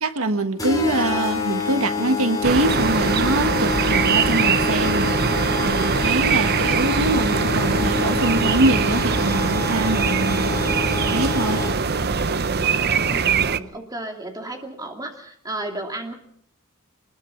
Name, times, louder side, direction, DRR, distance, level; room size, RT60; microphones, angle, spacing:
voice 1, 0.0-10.5 11.1-11.6, right 2 dB, 70° right, 9 dB, 1.4 m, -24 dB
sound 1, 0.6-12.0, left 4 dB, 15° left, 3.8 m, -27 dB
sound 2, 2.4-13.6, right 5 dB, 45° right, 0.8 m, -22 dB
voice 2, 13.1-16.1, right 1 dB, 15° right, 4 dB, 2.7 m, -33 dB
23.5 x 21.0 x 5.8 m, 0.68 s
head